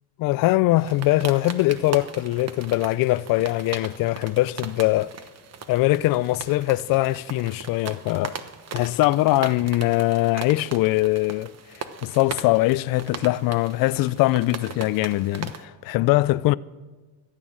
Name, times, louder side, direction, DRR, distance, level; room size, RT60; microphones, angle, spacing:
voice 1, 0.2-5.1 5.7-8.3 8.7-11.5 12.0-16.5, left 18 dB, 45° left, 0.5 m, -22 dB
sound 1, 0.8-15.6, right 6 dB, 30° right, 1.2 m, -39 dB
14.5 x 9.2 x 7.6 m
supercardioid pair, 105°, 48 cm